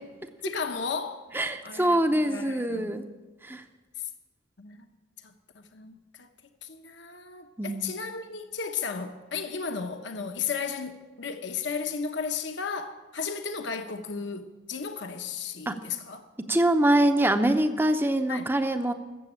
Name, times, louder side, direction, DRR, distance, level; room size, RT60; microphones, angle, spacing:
voice 1, 0.4-1.2 1.6-3.0 4.6-4.9 5.2-6.3 6.6-16.2 18.3-18.5, left 5 dB, 60° left, 1.0 m, -34 dB
voice 2, 1.3-3.0 3.4-3.6 7.6-7.9 15.7-15.8 16.5-18.9, right 1 dB, 10° right, 0.7 m, -24 dB
13.5 x 7.8 x 8.6 m
head